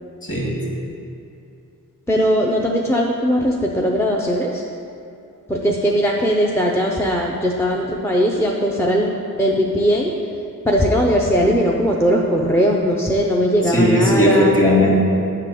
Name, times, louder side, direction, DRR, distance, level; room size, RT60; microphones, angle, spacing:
voice 1, 0.2-0.8 13.6-15.0, left 1 dB, 35° left, -3 dB, 1.9 m, -17 dB
voice 2, 2.1-4.6 5.5-9.1 9.4-10.1 10.7-14.5, equal, 5° left, -1 dB, 0.6 m, -19 dB
9.0 x 3.8 x 6.6 m, 2.6 s
wide cardioid pair, 75°, 36 cm